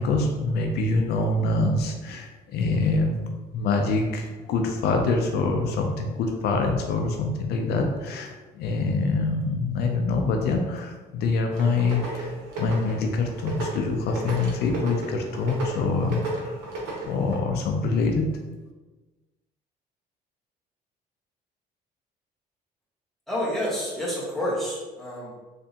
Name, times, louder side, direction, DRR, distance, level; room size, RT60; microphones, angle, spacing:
voice 1, 0.0-3.2 3.5-16.6 17.0-18.3, left 3 dB, 75° left, 3 dB, 0.5 m, -25 dB
sound 1, 11.5-17.4, right 1 dB, 85° right, 1.1 m, -34 dB
voice 2, 23.3-25.4, equal, ahead, -7 dB, 1.5 m, -29 dB
3.4 x 3.3 x 2.8 m, 1.2 s
cardioid pair, 110°, 17 cm